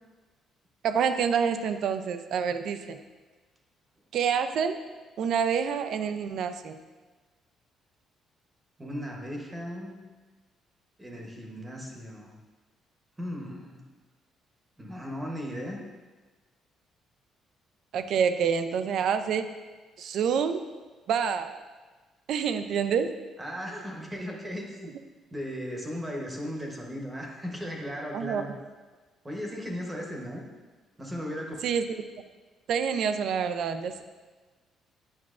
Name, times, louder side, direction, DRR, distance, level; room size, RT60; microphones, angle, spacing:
voice 1, 0.8-3.0 4.1-4.8 5.2-6.8 17.9-19.5 20.0-20.6 21.1-21.6 22.3-23.1 28.1-28.4 31.6-32.0 32.7-34.0, right 7 dB, 60° right, 10 dB, 0.4 m, -27 dB
voice 2, 8.8-10.0 11.0-12.4 13.2-13.8 14.8-15.8 23.4-24.9 25.3-28.5 29.2-30.4 31.0-31.5, equal, 10° right, 0 dB, 0.9 m, -36 dB
9.5 x 5.8 x 2.4 m, 1.3 s
cardioid pair, 160°, 0 cm